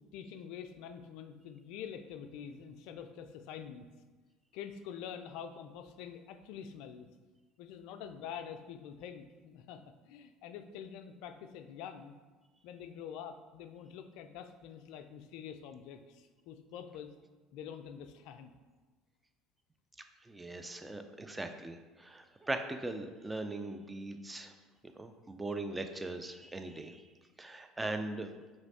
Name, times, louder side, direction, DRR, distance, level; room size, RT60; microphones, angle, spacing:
voice 1, 0.1-3.9 4.5-7.1 7.6-12.1 12.6-17.1 17.5-18.5, left 8 dB, 70° left, 8 dB, 0.3 m, -46 dB
voice 2, 20.3-24.5 25.0-27.0 27.4-28.3, right 2 dB, 15° right, 7 dB, 0.4 m, -40 dB
3.5 x 3.1 x 4.1 m, 1.3 s
hypercardioid pair, 75°, 0 cm